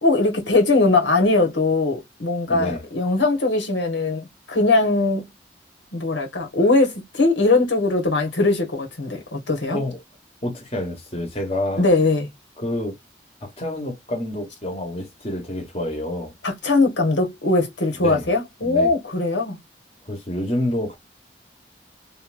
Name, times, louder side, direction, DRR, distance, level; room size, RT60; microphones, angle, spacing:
voice 1, 0.0-5.3 5.9-9.8 11.8-12.3 16.4-19.6, left 3 dB, 90° left, 1.3 m, -20 dB
voice 2, 2.5-2.8 9.7-10.0 10.4-11.8 12.6-13.0 13.4-16.3 18.0-18.3 18.6-18.9 20.1-21.0, left 1 dB, 35° left, 1.0 m, -28 dB
3.1 x 2.6 x 2.4 m
head